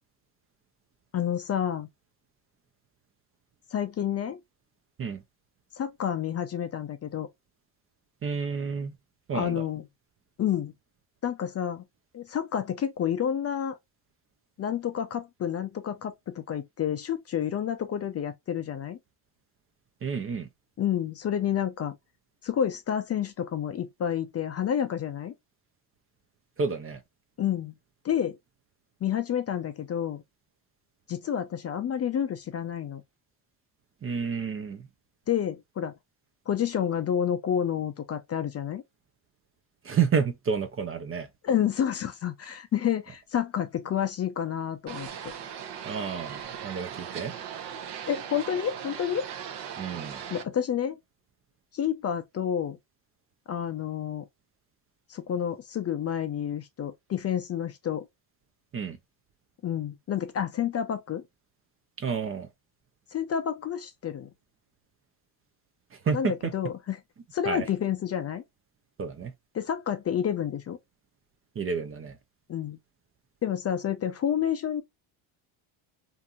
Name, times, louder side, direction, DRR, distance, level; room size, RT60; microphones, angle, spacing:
voice 1, 1.1-1.9 3.7-4.4 5.7-7.3 9.3-9.8 10.4-10.7 11.2-11.8 12.1-13.8 14.6-19.0 20.8-22.0 22.4-25.3 27.4-27.7 28.0-28.4 29.0-30.2 31.1-33.0 35.3-36.0 36.5-38.8 41.4-45.1 48.1-49.3 50.3-51.0 51.7-52.8 53.5-54.3 55.1-58.1 59.6-61.2 63.1-64.3 66.1-67.0 67.3-68.4 69.5-70.8 72.5-72.8 73.4-74.8, left 9 dB, 35° left, 0.4 m, -29 dB
voice 2, 8.2-9.0 9.3-9.6 20.0-20.5 26.6-27.0 34.0-34.9 39.8-41.3 45.8-47.3 49.8-50.2 58.7-59.0 62.0-62.5 65.9-66.5 67.5-67.7 69.0-69.3 71.6-72.2, right 6 dB, 30° right, 0.4 m, -30 dB
sound 1, 44.9-50.4, right 8 dB, 60° right, 0.8 m, -39 dB
2.6 x 2.6 x 2.3 m
supercardioid pair, 85°, 47 cm